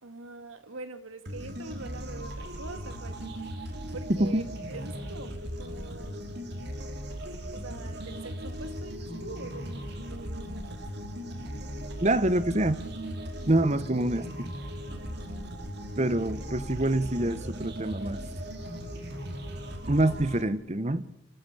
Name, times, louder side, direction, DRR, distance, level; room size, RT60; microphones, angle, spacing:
voice 1, 0.0-3.7 3.9-4.4 4.7-6.2 7.5-10.7, right 3 dB, 90° right, 9 dB, 2.3 m, -44 dB
sound 1, 1.2-20.4, equal, 55° right, 2.8 m, -38 dB
voice 2, 4.1-4.5 12.0-12.8 13.5-14.5 16.0-18.2 19.8-21.0, right 1 dB, 35° right, 15 dB, 1.1 m, -26 dB
28.0 x 14.0 x 8.5 m, 0.84 s
head